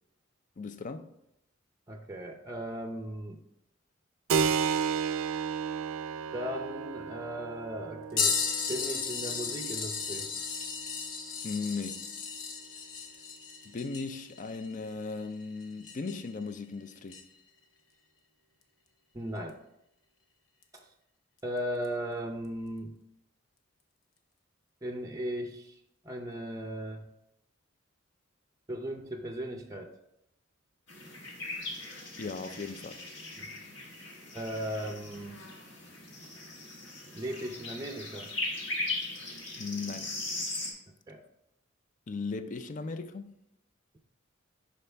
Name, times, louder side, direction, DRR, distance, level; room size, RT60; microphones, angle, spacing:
voice 1, 0.6-1.1 11.4-12.1 13.6-17.2 32.2-33.0 39.6-40.2 42.1-43.4, left 4 dB, 40° left, 0.5 m, -37 dB
voice 2, 1.9-3.4 6.3-8.4 8.7-10.3 19.1-19.6 20.7-20.9 21.4-22.9 24.8-25.8 26.0-27.1 28.7-29.9 33.3-33.5 34.3-35.4 37.1-38.3 41.1-41.2, equal, 15° right, 0.5 m, -37 dB
Keyboard (musical), 4.3-12.5, right 6 dB, 90° right, 0.4 m, -34 dB
sound 1, 8.2-16.4 17.1-17.2 19.5-19.6 20.6-20.8 21.8-21.9, left 6 dB, 90° left, 0.9 m, -35 dB
sound 2, 30.9-40.7, left 2 dB, 60° left, 1.7 m, -39 dB
11.0 x 4.2 x 3.4 m
head